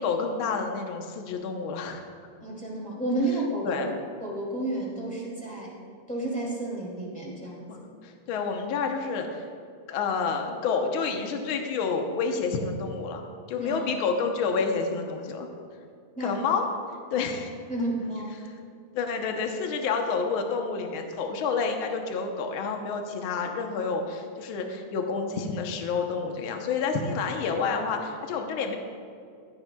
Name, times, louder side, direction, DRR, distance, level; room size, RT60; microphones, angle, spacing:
voice 1, 0.0-2.0 3.6-3.9 7.7-9.5 9.9-15.5 16.2-16.6 17.1-17.5 18.4-18.5 18.9-28.8, left 5 dB, 75° left, 4 dB, 1.2 m, -29 dB
voice 2, 2.4-3.8 4.2-5.7 6.1-7.8 13.6-14.0 16.1-16.4 17.7-18.4, right 1 dB, 5° left, -5 dB, 2.2 m, -31 dB
15.5 x 10.5 x 2.3 m, 2.4 s
omnidirectional pair, 3.5 m